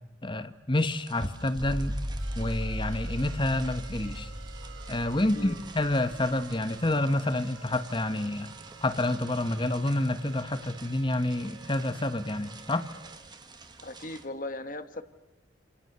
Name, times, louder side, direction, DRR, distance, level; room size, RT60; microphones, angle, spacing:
voice 1, 0.2-2.0 2.3-4.3 4.9-8.5 8.8-12.9, left 1 dB, 25° left, 11 dB, 1.2 m, -28 dB
sound 1, 0.7-14.3, right 4 dB, 20° right, 1.9 m, -50 dB
sound 2, 1.5-6.9, equal, 5° left, 2.6 m, -36 dB
sound 3, 2.2-13.2, right 5 dB, 85° right, 5.9 m, -50 dB
voice 2, 13.8-15.0, left 1 dB, 45° left, 10 dB, 1.6 m, -38 dB
28.5 x 28.0 x 6.9 m, 1.0 s
head